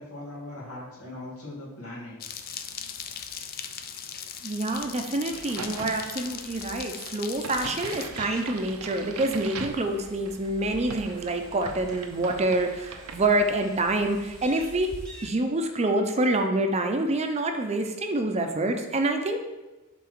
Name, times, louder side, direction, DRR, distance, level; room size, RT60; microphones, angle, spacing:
voice 1, 0.0-2.2, left 1 dB, 90° left, -4 dB, 2.3 m, -40 dB
sound 1, 2.2-8.1, left 8 dB, 45° left, 0.5 m, -39 dB
voice 2, 4.4-14.9 15.2-19.4, right 2 dB, 30° right, 5 dB, 0.6 m, -27 dB
Crack, 5.3-13.9, right 4 dB, 85° right, 0.7 m, -41 dB
sound 2, 7.4-15.3, equal, 5° left, 1.1 m, -47 dB
5.7 x 4.1 x 6.0 m, 1.1 s
head